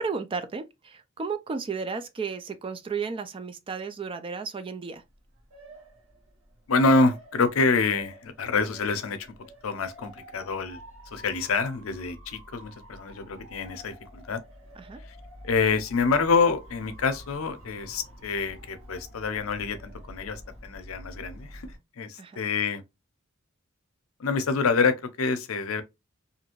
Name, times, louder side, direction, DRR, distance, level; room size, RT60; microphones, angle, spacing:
voice 1, 0.0-5.0 14.8-15.0 22.2-22.4, right 5 dB, 25° right, 0.3 m, -33 dB
Motor vehicle (road) / Siren, 5.0-21.8, equal, 70° right, 1.2 m, -48 dB
voice 2, 6.7-9.3 9.6-10.8 11.1-14.4 15.4-22.8 24.2-25.8, left 4 dB, 85° left, 0.5 m, -26 dB
2.7 x 2.5 x 2.9 m
head